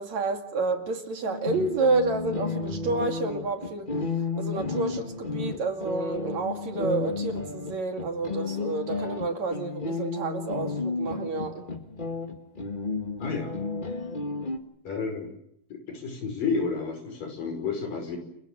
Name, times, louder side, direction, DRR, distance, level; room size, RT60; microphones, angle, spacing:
voice 1, 0.0-3.9 4.4-11.7, right 3 dB, 55° right, 5 dB, 3.4 m, -29 dB
sound 1, 1.2-14.6, left 3 dB, 30° left, 0.9 m, -32 dB
voice 2, 13.2-13.6 14.9-15.3 15.7-18.2, left 4 dB, 70° left, 6 dB, 7.2 m, -31 dB
29.5 x 25.5 x 7.7 m, 0.75 s
omnidirectional pair, 4.0 m